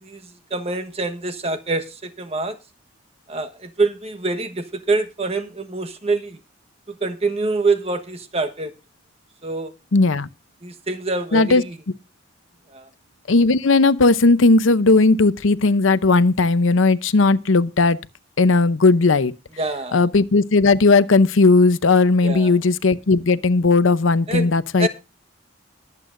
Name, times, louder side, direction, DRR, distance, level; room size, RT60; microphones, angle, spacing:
voice 1, 0.0-2.6 3.3-6.4 7.0-8.7 9.4-9.7 10.6-11.8 12.7-12.9 19.6-20.0 22.2-22.5 24.3-24.9, right 3 dB, 30° right, 1.2 m, -25 dB
voice 2, 9.9-10.3 11.3-11.6 13.3-18.0 18.4-19.3 19.9-24.9, left 3 dB, 80° left, 0.7 m, -16 dB
22.0 x 8.4 x 2.6 m
head